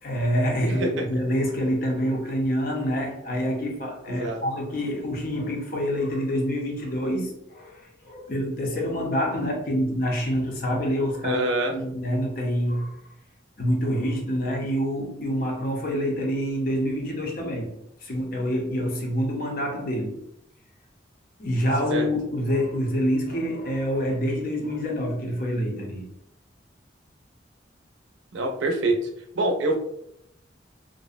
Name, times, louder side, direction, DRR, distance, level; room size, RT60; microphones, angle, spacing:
voice 1, 0.0-11.4 11.6-13.0 13.6-17.7 18.0-20.2 21.4-26.0, equal, 50° left, 0.5 m, -26 dB
voice 2, 4.1-4.4 11.2-11.7 21.9-22.1 28.3-29.0 29.4-29.8, right 2 dB, 85° right, 0.5 m, -25 dB
2.5 x 2.0 x 2.5 m
head